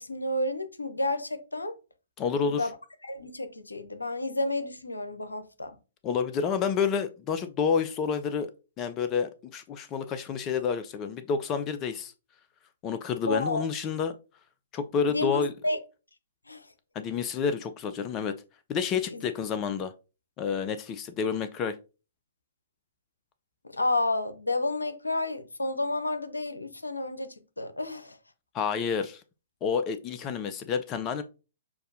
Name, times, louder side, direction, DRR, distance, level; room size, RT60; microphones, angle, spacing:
voice 1, 0.0-1.7 2.5-2.7 3.0-5.7 13.3-13.7 15.1-15.8 16.5-16.7 19.1-19.2 23.7-28.2, left 2 dB, 80° left, 0.7 m, -31 dB
voice 2, 2.2-2.7 6.0-8.5 8.8-12.1 12.8-14.1 14.7-15.5 17.0-18.4 18.7-19.9 20.4-21.8 28.5-29.2 29.6-31.2, left 6 dB, 25° left, 0.4 m, -29 dB
6.5 x 2.6 x 2.6 m
figure-of-eight pair, 120°, 0 cm